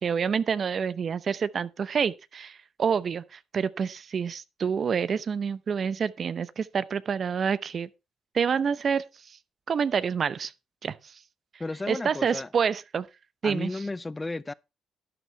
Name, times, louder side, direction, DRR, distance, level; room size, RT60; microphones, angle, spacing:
voice 1, 0.0-7.9 8.3-9.4 9.7-10.5 10.8-11.2 11.9-13.1 13.4-13.8, right 6 dB, 50° right, 0.7 m, -28 dB
voice 2, 11.6-12.5 13.4-14.5, left 2 dB, 20° left, 0.5 m, -33 dB
12.0 x 9.3 x 3.2 m
cardioid pair, 90°, 0 cm